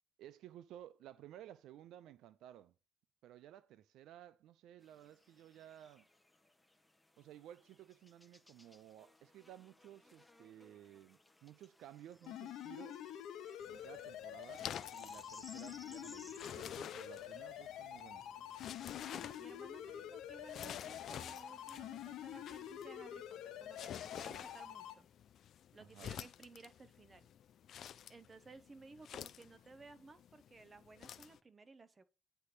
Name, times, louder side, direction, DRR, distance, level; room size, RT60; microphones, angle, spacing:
voice 1, 0.2-2.7 3.2-6.1 7.2-13.1 13.7-14.7 14.9-18.3 25.8-26.3, right 11 dB, 85° right, 0.4 m, -56 dB
sound 1, 4.8-17.8, left 1 dB, 10° left, 0.8 m, -62 dB
sound 2, 12.3-24.9, left 10 dB, 85° left, 0.9 m, -47 dB
sound 3, 13.6-31.4, left 9 dB, 70° left, 0.4 m, -51 dB
voice 2, 19.1-25.1 25.7-27.3 28.1-32.0, right 3 dB, 30° right, 0.9 m, -58 dB
9.6 x 3.4 x 5.9 m
cardioid pair, 90°, 0 cm